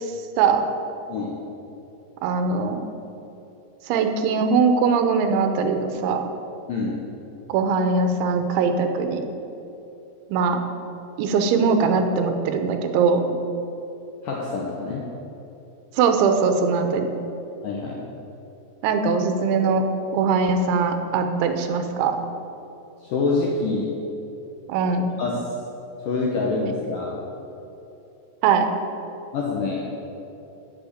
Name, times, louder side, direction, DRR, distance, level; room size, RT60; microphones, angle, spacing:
voice 1, 2.2-2.8 3.9-6.2 7.5-9.2 10.3-10.6 11.2-13.4 16.0-17.1 18.8-19.8 20.1-22.2 24.7-25.0 28.4-28.7, right 5 dB, 85° right, 6 dB, 3.2 m, -21 dB
voice 2, 14.2-15.1 17.6-18.0 23.0-23.9 25.2-25.4 26.1-27.2 29.3-29.9, left 3 dB, 75° left, -2 dB, 2.0 m, -25 dB
9.3 x 7.8 x 8.6 m, 2.9 s
omnidirectional pair, 5.3 m